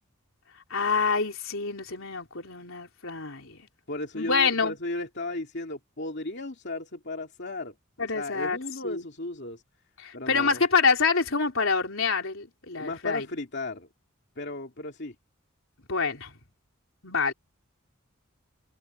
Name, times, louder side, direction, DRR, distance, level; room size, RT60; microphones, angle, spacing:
voice 1, 0.7-3.6 4.1-4.8 8.0-8.6 8.8-9.0 10.0-13.3 15.9-16.3 17.0-17.3, left 5 dB, 70° left, 3.7 m, -26 dB
voice 2, 3.9-7.7 8.1-9.6 10.1-10.6 12.8-13.9 14.4-15.1, left 2 dB, 55° left, 2.7 m, -35 dB
head